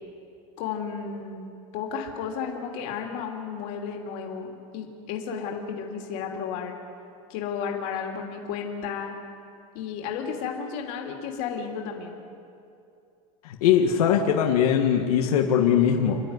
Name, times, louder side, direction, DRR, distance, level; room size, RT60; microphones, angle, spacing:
voice 1, 0.6-4.5 4.7-6.8 7.3-9.2 9.7-12.2, left 6 dB, 40° left, 1 dB, 3.1 m, -33 dB
voice 2, 13.5-16.2, left 8 dB, 80° left, 2 dB, 1.9 m, -21 dB
29.0 x 12.5 x 9.7 m, 2.5 s
supercardioid pair, 175°, 19 cm